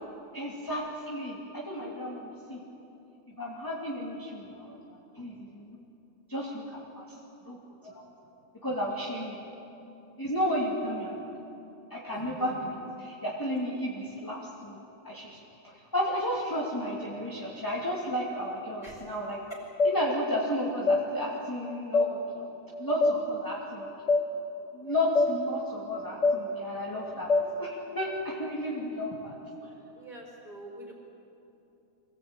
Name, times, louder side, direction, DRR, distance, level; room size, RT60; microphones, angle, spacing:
voice 1, 0.3-1.4 1.7-2.6 3.4-4.7 5.1-5.8 6.3-7.2 7.5-7.6 7.8-8.0 8.6-9.4 10.2-11.3 11.9-14.8 15.0-15.4 15.6-19.4 19.8-22.5 22.8-23.9 24.7-27.3 27.6-29.3 29.6-29.7, equal, 5° left, -5 dB, 2.3 m, -33 dB
voice 2, 12.1-12.5 18.8-19.0 27.1-27.5 30.0-30.9, right 1 dB, 15° right, -1 dB, 5.0 m, -46 dB
sound 1, 19.8-20.0 20.9-21.0 21.9-22.1 23.0-23.2 24.1-24.2 25.2-25.3 26.2-26.4 27.3-27.5, left 3 dB, 40° left, 1.0 m, -22 dB
25.0 x 18.0 x 8.9 m, 2.9 s
omnidirectional pair, 3.4 m